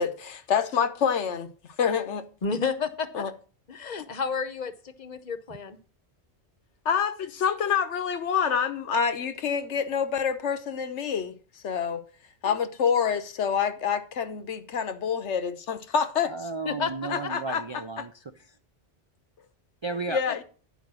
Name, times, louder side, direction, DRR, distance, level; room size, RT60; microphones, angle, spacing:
voice 1, 0.0-1.5 1.8-2.2 3.1-3.3 4.0-4.1 6.8-11.4 11.6-12.0 12.4-16.3 17.1-17.6 18.0-18.1 20.1-20.4, left 7 dB, 85° left, 1.2 m, -27 dB
voice 2, 2.4-3.2 3.7-4.7 5.0-5.8 12.4-12.6 16.7-16.9 17.2-17.3, left 5 dB, 40° left, 0.9 m, -30 dB
voice 3, 16.2-18.5 19.8-20.2, right 3 dB, 45° right, 0.3 m, -34 dB
10.5 x 5.3 x 6.1 m
omnidirectional pair, 1.2 m